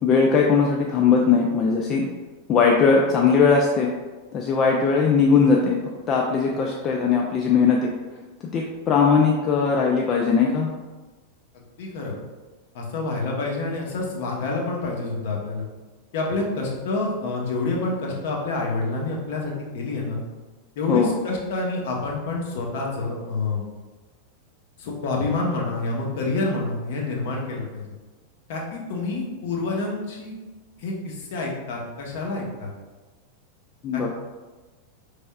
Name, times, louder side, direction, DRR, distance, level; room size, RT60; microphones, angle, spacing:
voice 1, 0.0-2.1 2.5-3.9 4.3-5.8 6.1-7.9 8.4-10.7 20.9-21.1 33.8-34.1, left 5 dB, 30° left, -1 dB, 0.4 m, -19 dB
voice 2, 11.8-12.1 12.7-15.6 16.1-20.2 20.8-23.6 24.8-27.9 28.5-30.4 30.8-32.7 33.9-34.1, left 3 dB, 50° left, -1 dB, 0.9 m, -28 dB
5.1 x 3.3 x 2.3 m, 1.3 s
figure-of-eight pair, 90°, 0 cm